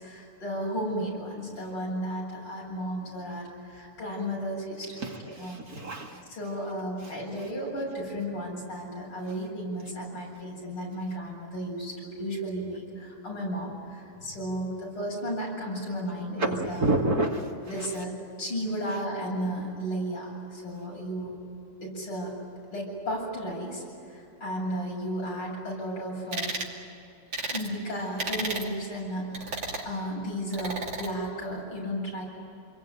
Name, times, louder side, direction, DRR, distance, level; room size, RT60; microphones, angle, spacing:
voice 1, 0.0-5.6 6.3-16.9 17.7-18.1 18.4-21.4 21.8-22.3 22.7-23.8 24.1-26.5 27.5-32.3, equal, 75° left, -2 dB, 8.7 m, -34 dB
voice 2, 5.0-6.2 7.0-7.1 7.4-7.5 16.4-17.5 17.8-17.9, right 2 dB, 45° right, 1 dB, 2.5 m, -29 dB
sound 1, 26.3-26.7 27.3-27.7 28.2-28.7 29.3-29.9 30.5-31.1, right 2 dB, 60° right, 3.5 m, -33 dB
28.5 x 22.0 x 9.3 m, 2.7 s
omnidirectional pair, 2.4 m